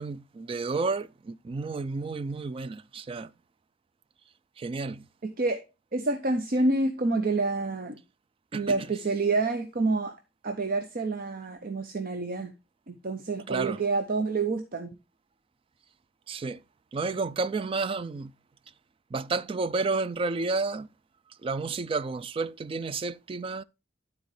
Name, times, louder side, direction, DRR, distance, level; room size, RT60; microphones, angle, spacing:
voice 1, 0.0-3.3 4.6-5.1 8.5-8.8 13.5-13.8 16.3-16.6 16.9-18.3 19.1-20.9 21.4-23.6, right 3 dB, 30° right, 0.3 m, -31 dB
voice 2, 5.2-5.6 5.9-8.0 8.5-10.1 10.4-12.5 12.9-14.9, right 3 dB, 50° right, 0.7 m, -28 dB
11.5 x 4.3 x 3.2 m
head